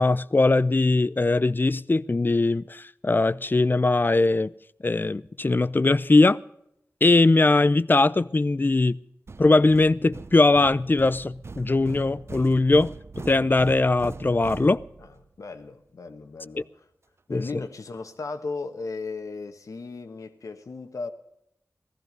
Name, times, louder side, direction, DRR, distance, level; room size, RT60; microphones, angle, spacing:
voice 1, 0.0-4.5 4.8-6.4 7.0-9.0 9.4-14.8 17.3-17.4, left 2 dB, 35° left, 0.5 m, -20 dB
sound 1, 9.3-15.3, right 4 dB, 50° right, 0.6 m, -41 dB
voice 2, 15.0-16.8 17.3-21.1, left 3 dB, 80° left, 1.4 m, -36 dB
16.0 x 14.5 x 5.3 m
cardioid pair, 50°, 6 cm